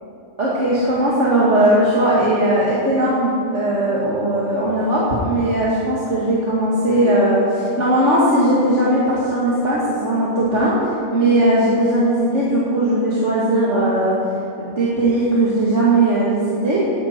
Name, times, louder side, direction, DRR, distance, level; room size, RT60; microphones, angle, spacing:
voice 1, 0.4-14.1 14.6-16.9, right 1 dB, 50° right, -7 dB, 2.3 m, -18 dB
16.5 x 11.5 x 4.4 m, 2.7 s
omnidirectional pair, 1.6 m